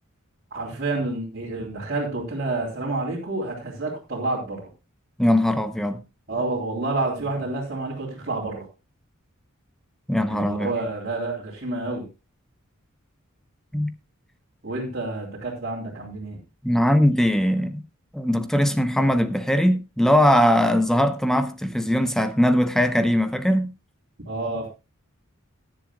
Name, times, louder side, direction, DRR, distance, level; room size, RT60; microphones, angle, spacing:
voice 1, 0.5-4.7 6.3-8.7 10.3-12.1 14.6-16.4 24.3-24.7, right 2 dB, 50° right, 3.4 m, -29 dB
voice 2, 5.2-6.0 10.1-10.7 13.7-13.9 16.6-17.8 18.1-23.7, equal, ahead, 0.7 m, -20 dB
17.5 x 10.5 x 2.3 m
head